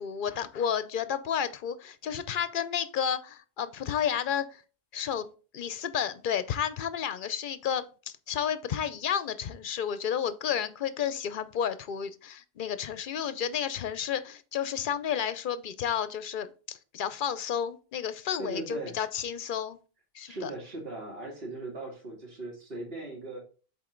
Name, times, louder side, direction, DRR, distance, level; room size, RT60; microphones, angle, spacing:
voice 1, 0.0-4.6 4.9-19.8 20.1-20.5, left 8 dB, 60° left, 13 dB, 0.8 m, -31 dB
voice 2, 18.4-19.0 20.2-23.4, right 2 dB, 70° right, -1 dB, 2.2 m, -38 dB
7.4 x 4.2 x 3.8 m, 0.37 s
omnidirectional pair, 1.0 m